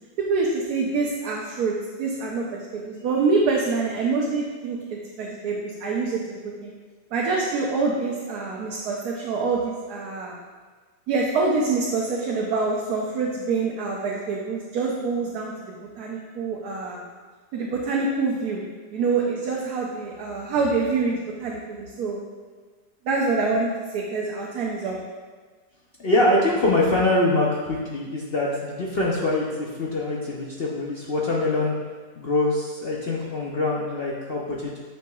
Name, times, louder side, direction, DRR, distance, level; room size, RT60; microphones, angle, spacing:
voice 1, 0.3-6.7 7.1-10.3 11.1-15.5 16.0-17.0 17.5-18.6 18.9-22.2 23.0-24.9, right 4 dB, 65° right, -3 dB, 1.2 m, -26 dB
voice 2, 26.0-31.7 32.2-34.8, left 2 dB, 55° left, -3 dB, 0.7 m, -24 dB
8.8 x 5.8 x 2.3 m, 1.4 s
omnidirectional pair, 1.9 m